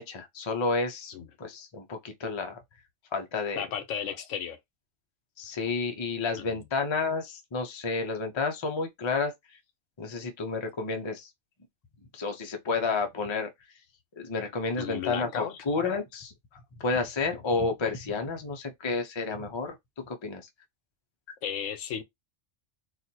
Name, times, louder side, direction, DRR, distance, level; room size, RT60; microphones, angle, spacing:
voice 1, 0.0-2.6 3.1-3.6 5.4-9.3 10.0-11.3 12.1-13.5 14.2-16.3 16.8-19.8 20.1-20.5, left 4 dB, 30° left, 0.5 m, -30 dB
voice 2, 3.6-4.6 6.4-6.5 14.8-15.5 21.4-22.0, left 8 dB, 85° left, 1.0 m, -34 dB
4.1 x 2.4 x 2.7 m
omnidirectional pair, 1.3 m